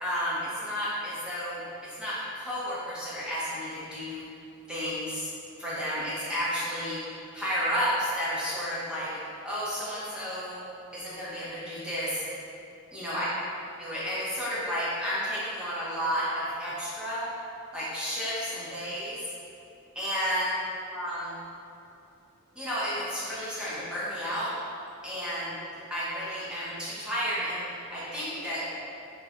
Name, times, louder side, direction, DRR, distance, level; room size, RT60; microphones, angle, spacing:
voice 1, 0.0-4.2 4.7-5.3 5.6-7.0 7.3-10.6 10.9-12.2 12.9-13.3 13.8-17.3 17.7-19.2 19.9-20.5 20.9-21.4 22.5-24.5 25.0-25.6 25.9-28.6, equal, 5° right, -10 dB, 0.6 m, -32 dB
3.1 x 3.1 x 2.4 m, 2.8 s
head